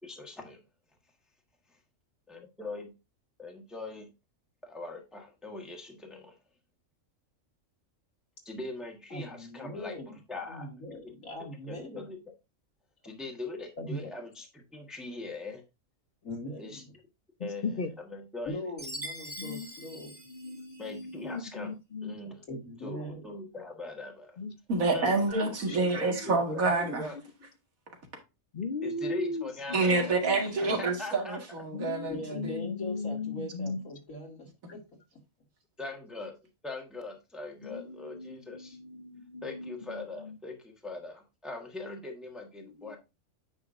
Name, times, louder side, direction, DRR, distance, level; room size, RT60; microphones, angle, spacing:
voice 1, 0.0-0.6 2.3-2.9 3.4-4.1 4.6-6.3 8.4-10.7 11.7-12.2 13.0-15.6 16.6-16.8 17.4-18.6 20.8-21.7 22.0-22.5 22.8-24.3 24.9-25.3 26.0-27.2 28.8-30.3 30.8-31.4 35.8-36.3 36.6-38.8 39.4-43.0, left 3 dB, ahead, 1.3 m, -41 dB
voice 2, 9.1-10.1 10.5-12.0 13.8-14.1 16.2-16.9 18.5-20.1 22.5-23.3 32.1-34.8, left 1 dB, 85° left, 2.5 m, -40 dB
voice 3, 17.4-17.9 19.4-19.7 20.3-22.2 24.4-24.6 25.7-25.8 26.2-26.4 26.9-27.0 28.5-29.4 29.7-30.4 31.7-33.8 37.6-37.8 38.1-40.3 42.8-43.0, left 3 dB, 45° left, 0.9 m, -37 dB
Chime, 18.8-21.1, equal, 25° right, 1.3 m, -43 dB
voice 4, 24.7-27.1 29.7-32.2 32.4-32.6, right 3 dB, 90° right, 2.3 m, -27 dB
9.0 x 5.8 x 2.5 m
omnidirectional pair, 1.4 m